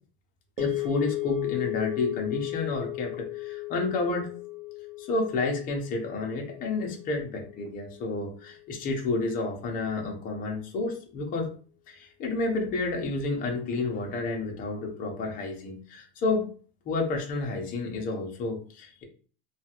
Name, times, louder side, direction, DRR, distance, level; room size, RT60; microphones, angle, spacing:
voice 1, 0.6-4.3 5.0-11.5 11.9-16.5 16.9-19.0, left 3 dB, 30° left, 1 dB, 0.7 m, -30 dB
sound 1, 0.6-8.9, left 16 dB, 85° right, 0.9 m, -36 dB
3.0 x 2.3 x 2.9 m, 0.40 s
supercardioid pair, 145°, 29 cm